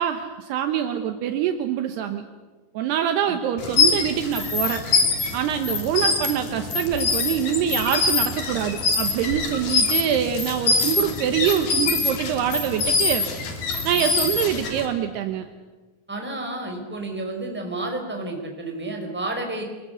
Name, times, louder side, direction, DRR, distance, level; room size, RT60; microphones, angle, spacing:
voice 1, 0.0-2.2 2.7-4.8 5.3-13.3 13.8-15.5, right 9 dB, 75° right, 7 dB, 3.0 m, -25 dB
sound 1, 3.6-14.9, left 4 dB, 55° left, 4.3 m, -24 dB
voice 2, 16.1-19.6, right 2 dB, ahead, 2 dB, 4.1 m, -31 dB
26.5 x 21.5 x 8.1 m, 1.3 s
omnidirectional pair, 5.0 m